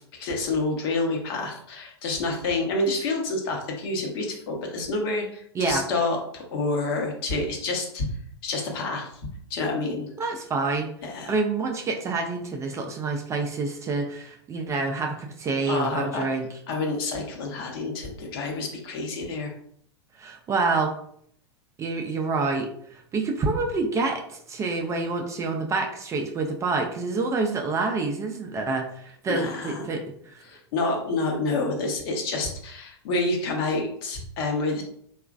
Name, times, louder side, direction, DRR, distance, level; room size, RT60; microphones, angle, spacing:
voice 1, 0.2-8.1 8.4-9.2 9.5-10.1 11.0-11.3 15.7-16.2 16.7-19.5 29.3-29.9 30.4-34.8, left 3 dB, 55° left, 1 dB, 0.9 m, -28 dB
voice 2, 5.6-5.9 10.2-10.9 11.3-16.5 20.2-20.9 21.8-30.4, right 3 dB, 20° right, 2 dB, 0.4 m, -27 dB
2.9 x 2.4 x 2.4 m, 0.65 s
hypercardioid pair, 100°, 14 cm